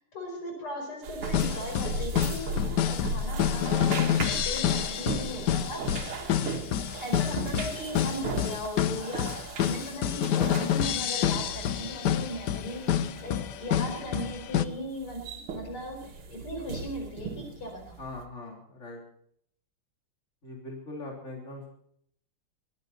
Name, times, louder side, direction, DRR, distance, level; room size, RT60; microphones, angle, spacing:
voice 1, 0.1-5.8 7.0-18.0, equal, 80° left, 2 dB, 6.0 m, -38 dB
sound 1, 1.0-18.2, right 3 dB, 85° right, 2.3 m, -37 dB
sound 2, 1.3-14.7, left 10 dB, 65° left, 1.1 m, -28 dB
voice 2, 18.0-19.0 20.4-21.7, left 2 dB, 35° left, -1 dB, 3.7 m, -41 dB
22.0 x 11.5 x 4.2 m, 0.69 s
omnidirectional pair, 2.4 m